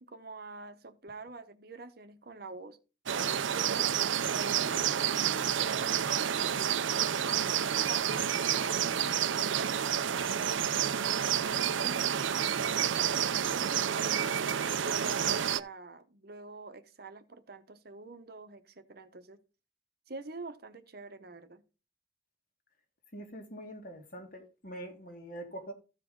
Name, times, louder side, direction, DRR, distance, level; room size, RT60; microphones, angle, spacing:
voice 1, 0.0-2.8 3.5-7.2 7.9-14.2 14.8-19.4 20.1-21.6, right 3 dB, 50° right, 0.9 m, -46 dB
sound 1, 3.1-15.6, right 9 dB, 70° right, 0.5 m, -29 dB
voice 2, 23.1-25.7, right 1 dB, 45° left, 1.8 m, -44 dB
14.0 x 5.0 x 3.8 m
head